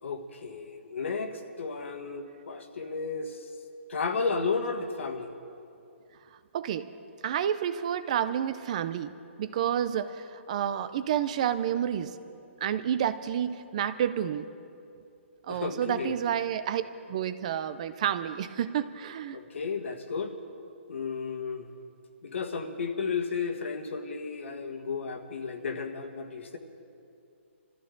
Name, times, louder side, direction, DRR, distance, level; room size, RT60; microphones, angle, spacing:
voice 1, 0.0-3.5 3.9-5.3 15.5-16.2 19.3-20.3 20.9-21.7 22.2-26.6, left 5 dB, 70° left, 6 dB, 1.6 m, -33 dB
voice 2, 6.5-6.9 7.2-9.1 9.4-12.2 12.6-14.5 15.5-16.8 17.1-19.4, right 9 dB, 30° right, 13 dB, 0.5 m, -29 dB
25.0 x 14.5 x 3.9 m, 2.6 s
hypercardioid pair, 170°, 7 cm